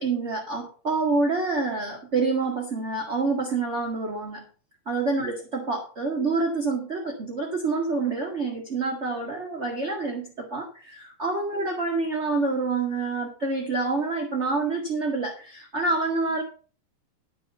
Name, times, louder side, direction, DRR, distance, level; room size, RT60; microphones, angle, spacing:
voice 1, 0.0-4.4 4.8-16.4, right 3 dB, 30° right, 0 dB, 1.5 m, -27 dB
13.5 x 5.3 x 6.9 m, 0.40 s
omnidirectional pair, 3.9 m